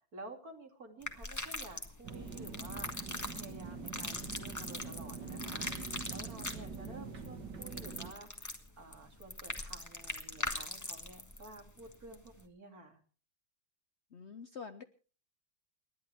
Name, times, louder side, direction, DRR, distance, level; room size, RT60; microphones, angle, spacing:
voice 1, 0.0-13.0, right 2 dB, 55° right, 4 dB, 3.3 m, -52 dB
sound 1, 1.0-12.4, left 1 dB, 10° left, 1.7 m, -42 dB
sound 2, 2.0-8.1, right 4 dB, 75° right, 2.5 m, -44 dB
voice 2, 14.1-14.8, left 5 dB, 50° left, 10 dB, 0.9 m, -46 dB
30.0 x 11.5 x 3.4 m, 0.38 s
omnidirectional pair, 1.9 m